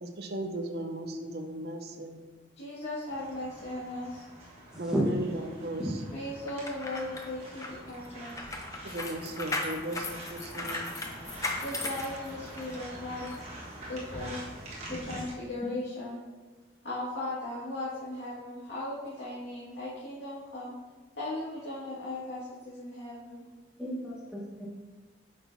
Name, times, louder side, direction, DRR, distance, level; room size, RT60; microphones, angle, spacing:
voice 1, 0.0-2.2 4.8-5.8 8.8-10.9, right 1 dB, 60° right, 5 dB, 0.7 m, -36 dB
voice 2, 2.6-4.2 6.1-8.4 11.6-14.4 14.9-16.2 16.8-20.8 21.1-23.5, left 1 dB, 85° left, -10 dB, 2.0 m, -37 dB
sound 1, 3.1-15.3, right 1 dB, 35° right, 1.6 m, -45 dB
voice 3, 4.7-5.0 5.8-5.9 15.6-15.7 23.8-24.7, equal, 5° right, -4 dB, 1.3 m, -32 dB
sound 2, 6.5-12.8 13.2-13.4, left 2 dB, 20° left, 0.6 m, -37 dB
8.6 x 6.0 x 2.7 m, 1.2 s
head